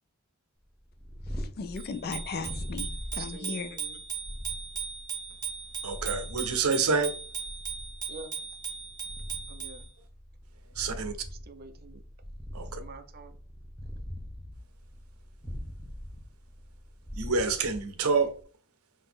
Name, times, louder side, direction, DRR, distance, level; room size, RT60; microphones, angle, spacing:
Purr, 0.7-18.4, equal, ahead, 0.8 m, -42 dB
voice 1, 1.3-3.8, left 4 dB, 45° left, 0.4 m, -37 dB
Bicycle bell, 1.8-9.8, right 6 dB, 20° right, 1.6 m, -38 dB
voice 2, 3.2-4.0 8.1-8.4 9.5-9.9 11.3-12.0 12.8-13.4, right 3 dB, 45° right, 0.5 m, -46 dB
voice 3, 5.8-7.1 10.8-11.1 12.5-12.8 17.1-18.3, right 4 dB, 85° right, 0.6 m, -27 dB
3.9 x 2.5 x 3.7 m
head